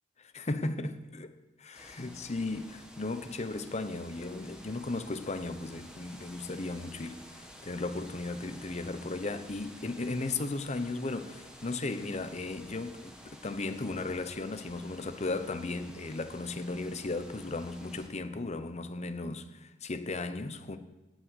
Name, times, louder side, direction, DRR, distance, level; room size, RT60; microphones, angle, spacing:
voice 1, 0.2-20.8, left 2 dB, 35° left, 0.8 m, -36 dB
sound 1, 1.7-18.1, equal, 5° right, 1.7 m, -52 dB
17.5 x 6.5 x 6.2 m
head